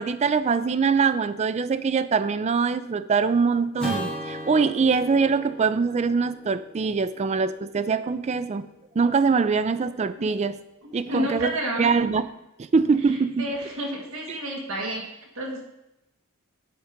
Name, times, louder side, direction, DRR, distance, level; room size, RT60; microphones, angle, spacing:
voice 1, 0.0-8.7 9.0-10.6 10.9-11.5 11.8-12.2 12.6-13.5, right 5 dB, 30° right, 13 dB, 0.3 m, -23 dB
Acoustic guitar / Strum, 3.8-8.2, equal, 5° left, 2.5 m, -37 dB
voice 2, 11.1-12.0 13.0-15.7, right 1 dB, 60° right, 0 dB, 1.7 m, -31 dB
8.0 x 4.6 x 5.1 m, 0.93 s
head